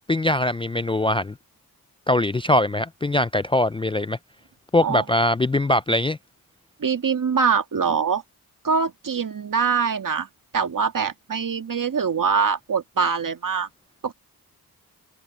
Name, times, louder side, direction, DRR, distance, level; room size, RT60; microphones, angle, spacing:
voice 1, 0.1-1.3 2.1-4.2 4.7-6.2, left 1 dB, 15° left, 0.4 m, -22 dB
voice 2, 6.8-8.2 8.6-10.3 10.5-13.7 14.0-14.1, right 6 dB, 60° right, 1.9 m, -23 dB
cardioid pair, 50°, 37 cm